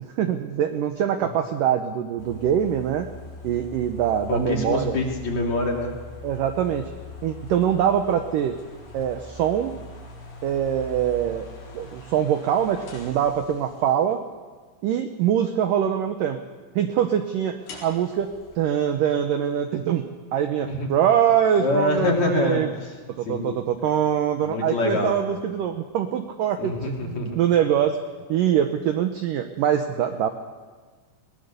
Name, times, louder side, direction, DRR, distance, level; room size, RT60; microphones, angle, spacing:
voice 1, 0.2-3.1 3.4-5.0 6.2-6.9 7.2-8.6 8.9-9.7 10.4-11.5 11.7-14.2 14.8-16.4 16.8-17.6 17.8-18.3 18.6-20.0 20.3-22.7 23.2-26.7 27.0-28.0 28.3-30.3, right 9 dB, 85° right, 7 dB, 1.9 m, -23 dB
sound 1, 2.2-13.9 17.6-18.6, left 1 dB, 90° left, 6.7 m, -42 dB
voice 2, 4.3-5.9 20.7-20.9 21.6-22.9 23.3-23.5 24.4-25.1 26.6-27.4, left 2 dB, 45° left, 0 dB, 3.5 m, -25 dB
21.5 x 19.0 x 6.8 m, 1.4 s
omnidirectional pair, 5.1 m